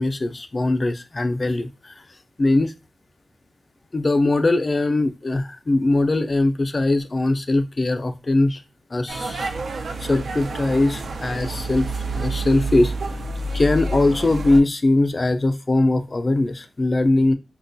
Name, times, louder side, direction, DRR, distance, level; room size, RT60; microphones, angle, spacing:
voice 1, 0.0-2.0 2.4-2.7 3.9-8.6 8.9-9.5 10.0-13.2 13.5-17.3, left 2 dB, 35° left, 0.3 m, -21 dB
sound 1, 9.1-14.6, right 2 dB, 80° right, 0.4 m, -28 dB
4.5 x 2.2 x 2.6 m
wide cardioid pair, 110°, 0 cm